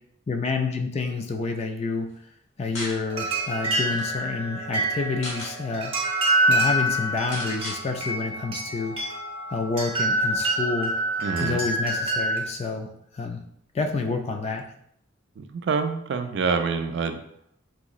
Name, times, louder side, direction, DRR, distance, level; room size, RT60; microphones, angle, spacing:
voice 1, 0.3-2.1 2.6-5.9 6.5-9.0 9.5-10.9 11.4-13.4 13.7-14.6, left 4 dB, 30° left, 4 dB, 0.3 m, -28 dB
sound 1, 2.7-3.0 3.5-3.6 3.8-4.1 5.0-5.5 6.1-6.2 6.4-6.6 7.3-7.8, left 1 dB, 75° left, 1.1 m, -36 dB
sound 2, 3.1-12.4, right 1 dB, 30° right, 0.7 m, -26 dB
voice 2, 11.2-11.6 15.4-17.2, right 5 dB, 60° right, 7 dB, 0.3 m, -26 dB
3.6 x 3.0 x 2.4 m, 0.69 s
head